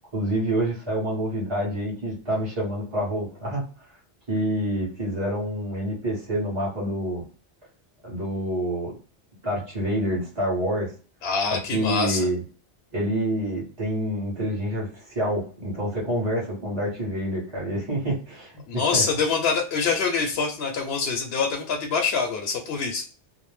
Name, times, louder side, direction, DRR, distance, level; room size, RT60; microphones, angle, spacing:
voice 1, 0.1-3.9 4.3-7.2 8.0-9.0 9.4-10.9 11.7-12.4 12.9-19.0, equal, 25° right, -7 dB, 1.1 m, -27 dB
voice 2, 11.2-12.3 18.7-23.0, left 5 dB, 70° left, 1 dB, 0.8 m, -25 dB
2.6 x 2.0 x 3.2 m, 0.37 s
omnidirectional pair, 1.1 m